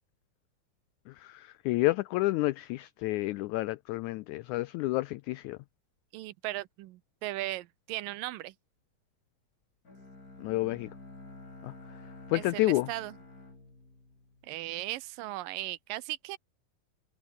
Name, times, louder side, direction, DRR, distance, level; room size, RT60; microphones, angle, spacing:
voice 1, 1.7-5.6 10.4-10.9 12.3-12.9, left 19 dB, 90° left, 1.7 m, -29 dB
voice 2, 6.1-8.5 12.3-13.2 14.4-16.4, right 16 dB, 80° right, 2.5 m, -37 dB
Bowed string instrument, 9.9-14.9, left 2 dB, 25° left, 5.4 m, -50 dB
omnidirectional pair, 4.0 m